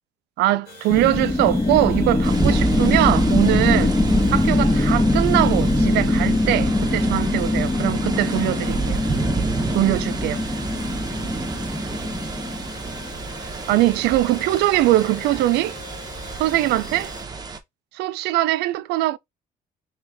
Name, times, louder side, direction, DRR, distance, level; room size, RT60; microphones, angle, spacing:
voice 1, 0.4-3.9 4.3-9.0 9.7-10.4 13.7-15.8 16.4-17.1 17.9-19.2, right 16 dB, 80° right, 0.4 m, -21 dB
sound 1, 0.6-17.2, left 3 dB, 80° left, 2.0 m, -42 dB
sound 2, 0.9-13.2, left 2 dB, 15° left, 0.8 m, -22 dB
sound 3, 2.2-17.6, right 4 dB, 25° right, 0.8 m, -30 dB
3.2 x 3.1 x 3.3 m
cardioid pair, 110°, 17 cm